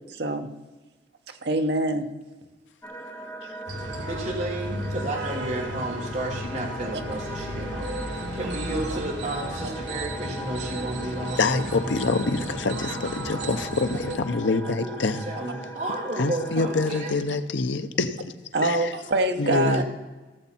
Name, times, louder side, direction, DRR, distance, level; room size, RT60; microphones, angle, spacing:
voice 1, 0.1-0.5 1.4-2.1 18.5-19.8, right 1 dB, 60° right, 5 dB, 0.9 m, -24 dB
sound 1, 2.8-17.2, right 1 dB, 15° left, 0.9 m, -39 dB
sound 2, 3.7-14.2, right 1 dB, 75° right, 1.5 m, -34 dB
voice 2, 4.0-11.4 14.7-17.2 19.5-19.8, right 1 dB, 40° right, -1 dB, 1.6 m, -32 dB
Wind instrument woodwind instrument, 5.2-9.6, equal, 5° right, 1.5 m, -48 dB
voice 3, 11.4-15.3 16.2-18.2 18.6-18.9 19.4-19.8, left 3 dB, 80° left, 10 dB, 0.7 m, -26 dB
16.5 x 7.1 x 4.3 m, 1.2 s
head